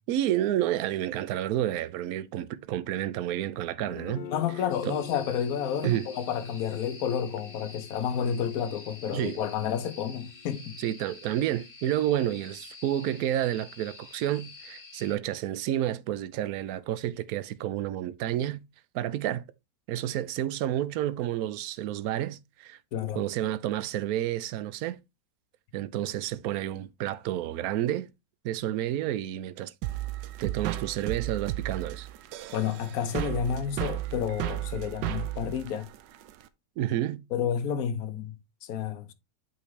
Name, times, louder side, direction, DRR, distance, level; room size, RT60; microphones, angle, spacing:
voice 1, 0.1-4.3 4.8-5.0 5.8-6.1 9.1-9.4 10.8-18.6 18.9-19.4 19.9-22.8 23.2-25.0 25.7-28.1 28.4-29.7 30.4-32.1 36.8-37.2, right 12 dB, 70° right, 1.0 m, -30 dB
Guitar, 3.9-11.6, left 8 dB, 90° left, 1.5 m, -47 dB
voice 2, 4.3-10.8 22.9-23.2 32.5-35.9 37.3-39.1, left 8 dB, 60° left, 1.2 m, -30 dB
sound 1, 4.7-15.2, left 4 dB, 40° left, 1.7 m, -48 dB
sound 2, 29.8-36.5, right 15 dB, 90° right, 1.3 m, -34 dB
8.4 x 4.3 x 3.2 m
omnidirectional pair, 1.8 m